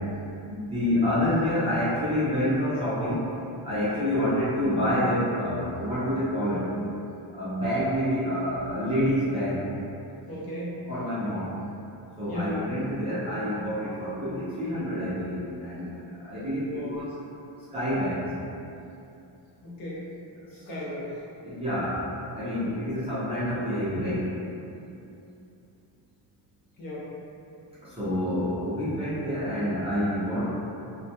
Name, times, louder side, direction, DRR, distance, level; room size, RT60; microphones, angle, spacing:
voice 1, 0.4-3.2 3.6-6.7 7.3-9.6 10.9-11.5 12.2-15.9 16.2-17.0 17.7-18.3 21.4-22.0 22.3-24.3 27.8-30.5, equal, 15° right, -13 dB, 0.5 m, -27 dB
voice 2, 10.3-10.8 12.3-12.6 16.7-17.1 19.6-20.1 20.5-21.2 26.8-27.1, left 1 dB, 50° left, -7 dB, 0.6 m, -36 dB
2.2 x 2.2 x 2.7 m, 2.7 s
wide cardioid pair, 165°, 46 cm